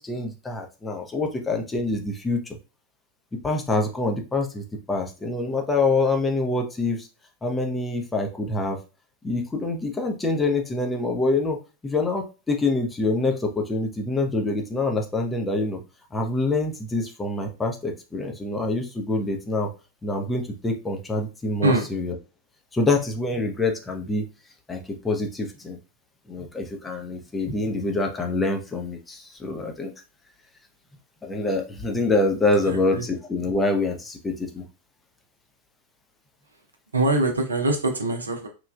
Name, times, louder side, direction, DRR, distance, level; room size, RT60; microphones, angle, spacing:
voice 1, 0.0-2.4 3.4-7.1 7.4-8.8 9.2-11.6 11.8-15.8 16.1-19.7 20.0-22.1 22.7-24.2 24.7-25.8 26.3-29.9 31.2-34.6, left 2 dB, 15° left, 2 dB, 0.5 m, -26 dB
voice 2, 32.6-33.1 36.9-38.5, right 2 dB, 75° right, 4 dB, 0.6 m, -23 dB
3.1 x 2.3 x 2.3 m, 0.31 s
figure-of-eight pair, 90°, 0 cm